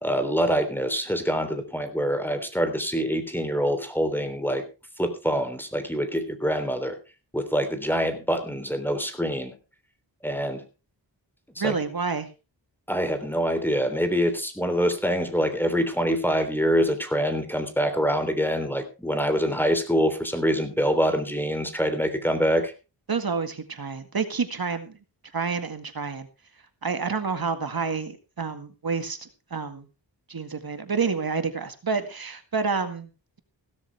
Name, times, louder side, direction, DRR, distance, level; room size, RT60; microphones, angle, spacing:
voice 1, 0.0-4.6 5.0-7.0 7.3-9.5 10.2-10.6 11.6-11.7 12.9-22.7, equal, 5° left, 8 dB, 3.3 m, -25 dB
voice 2, 11.6-12.3 23.1-24.9 25.3-26.3 26.8-29.9 30.3-33.1, right 5 dB, 55° right, 9 dB, 1.9 m, -29 dB
17.0 x 12.5 x 3.4 m, 0.31 s
wide cardioid pair, 65°, 43 cm